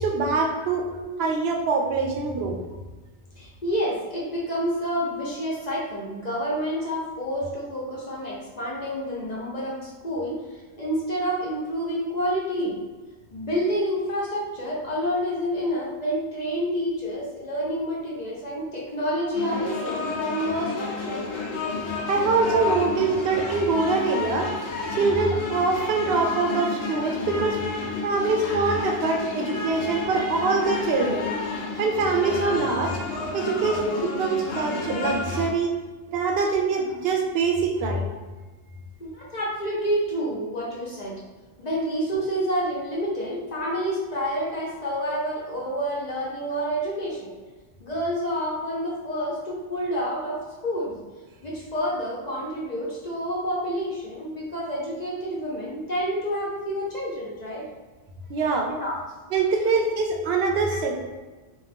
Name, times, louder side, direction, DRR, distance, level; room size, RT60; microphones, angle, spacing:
voice 1, 0.0-0.9 1.2-2.6 22.1-24.5 24.9-27.6 28.0-31.3 31.8-33.0 33.3-35.7 36.1-38.0 58.3-58.7 59.3-61.1, right 4 dB, 70° right, 2 dB, 0.8 m, -24 dB
voice 2, 3.4-10.4 10.8-12.8 13.3-21.2 22.6-22.7 23.0-23.2 26.5-26.6 35.3-35.4 39.0-41.2 41.6-47.3 47.8-51.0 51.4-57.6 58.7-59.0 60.7-60.8, equal, 45° left, -5 dB, 0.7 m, -28 dB
sound 1, 19.3-35.5, left 3 dB, 85° left, 0.9 m, -31 dB
2.6 x 2.3 x 3.3 m, 1.3 s
omnidirectional pair, 1.1 m